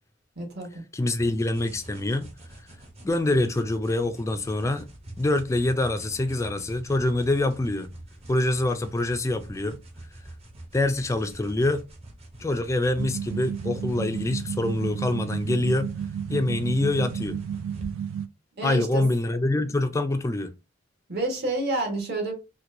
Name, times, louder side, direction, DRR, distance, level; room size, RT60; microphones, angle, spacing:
voice 1, 0.4-0.8 18.6-19.1 21.1-22.3, right 2 dB, 55° right, 1.2 m, -29 dB
voice 2, 0.9-2.3 3.0-4.9 5.2-7.9 8.3-9.8 10.7-11.8 12.4-15.9 16.3-17.4 18.6-20.5, left 2 dB, 15° left, 0.3 m, -25 dB
sound 1, 1.2-17.9, right 1 dB, 35° right, 0.7 m, -46 dB
sound 2, 13.0-18.3, right 8 dB, 85° right, 0.3 m, -32 dB
4.3 x 2.2 x 2.6 m
head